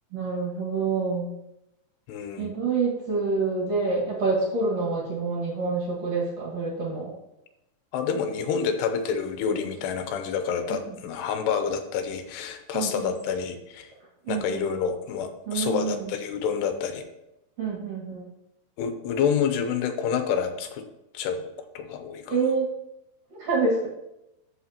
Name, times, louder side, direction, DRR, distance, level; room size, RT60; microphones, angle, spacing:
voice 1, 0.1-1.3 2.4-7.1 9.5-9.6 10.7-11.0 12.7-13.1 14.2-14.7 15.5-16.1 17.6-18.3 22.3-22.7 23.3-23.9, right 4 dB, 50° right, -4 dB, 2.5 m, -27 dB
voice 2, 2.1-2.5 7.9-13.9 14.3-17.0 18.8-20.8 21.1-21.4 21.8-22.4, left 7 dB, 85° left, 7 dB, 2.9 m, -28 dB
13.5 x 5.7 x 2.9 m, 0.89 s
omnidirectional pair, 4.7 m